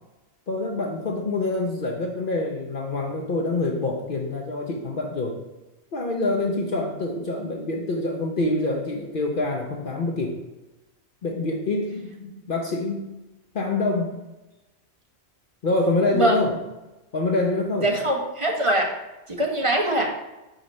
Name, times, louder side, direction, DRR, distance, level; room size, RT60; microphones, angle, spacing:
voice 1, 0.5-5.4 5.9-10.4 11.2-13.1 13.5-14.1 15.6-16.6 17.1-17.9, left 2 dB, 55° left, 1 dB, 0.9 m, -26 dB
voice 2, 17.8-18.9 19.3-20.1, right 1 dB, 30° right, 0 dB, 1.0 m, -22 dB
5.0 x 4.4 x 5.2 m, 1.0 s
omnidirectional pair, 1.1 m